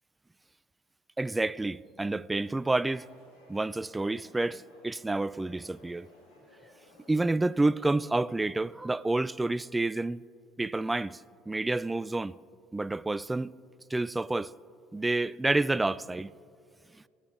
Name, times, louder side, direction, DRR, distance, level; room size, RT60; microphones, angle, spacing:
voice 1, 1.2-3.1 3.5-6.1 7.1-10.2 10.6-11.2 11.5-12.4 12.7-13.5 13.9-14.5 14.9-16.3, right 2 dB, 15° right, 0.3 m, -29 dB
sound 1, 2.4-8.1, left 1 dB, 85° left, 3.1 m, -58 dB
24.5 x 9.0 x 3.2 m
hypercardioid pair, 65°, 0 cm